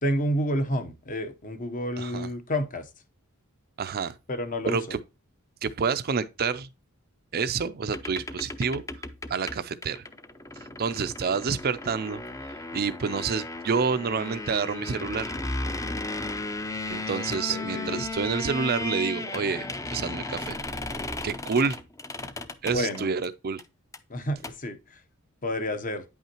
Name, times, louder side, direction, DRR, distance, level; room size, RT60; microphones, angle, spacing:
voice 1, 0.0-2.9 4.3-5.0 17.5-18.0 22.6-23.1 24.1-25.0 25.4-26.0, equal, 35° left, 0.9 m, -30 dB
voice 2, 2.0-2.3 3.8-4.2 4.7-5.0 5.6-6.7 7.3-8.8 9.3-10.0 10.5-15.3 16.9-20.6 21.2-21.8 22.6-23.6, right 5 dB, 45° right, 0.5 m, -28 dB
sound 1, 7.9-23.3 23.6-23.7 23.9-24.0 24.3-24.5, left 2 dB, 15° left, 0.6 m, -35 dB
9.4 x 5.5 x 2.9 m
head